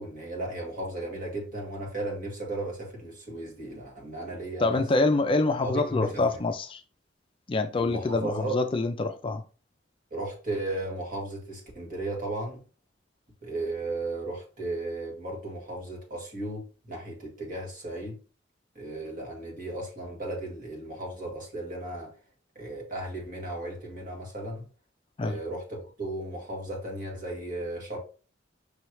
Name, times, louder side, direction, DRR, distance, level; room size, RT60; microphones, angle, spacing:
voice 1, 0.0-4.8 5.6-6.5 7.7-8.6 10.1-12.6 13.4-18.2 18.8-22.1 22.6-24.7 25.2-28.0, right 2 dB, 45° right, 1.9 m, -35 dB
voice 2, 4.6-6.8 7.5-9.4 25.2-25.4, left 2 dB, 30° left, 0.4 m, -26 dB
5.5 x 3.1 x 3.0 m
head